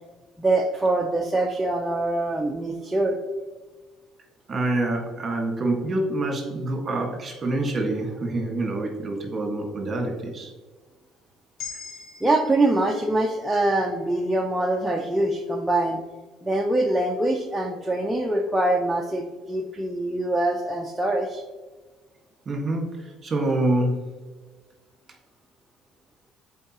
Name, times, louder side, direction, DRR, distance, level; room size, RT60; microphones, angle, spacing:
voice 1, 0.4-3.2 12.2-16.0 16.4-21.4, right 2 dB, 10° right, 0 dB, 0.6 m, -24 dB
voice 2, 4.5-10.5 22.5-24.1, right 2 dB, 30° right, 2 dB, 1.7 m, -26 dB
sound 1, 11.6-15.8, left 6 dB, 65° left, 1.2 m, -44 dB
7.8 x 4.6 x 3.0 m, 1.3 s
cardioid pair, 110°, 0 cm